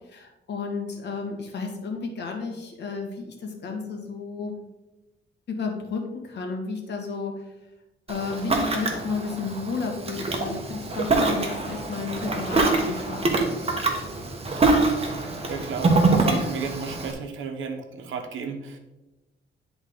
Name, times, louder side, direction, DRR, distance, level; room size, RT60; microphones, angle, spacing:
voice 1, 0.1-4.6 5.5-7.4 8.1-13.3, left 4 dB, 60° left, 2 dB, 1.7 m, -32 dB
Ocean, 8.1-17.1, right 3 dB, 30° right, 1.3 m, -25 dB
voice 2, 15.5-18.8, right 5 dB, 80° right, 6 dB, 1.1 m, -33 dB
10.5 x 4.0 x 3.9 m, 1.0 s
cardioid pair, 110°, 20 cm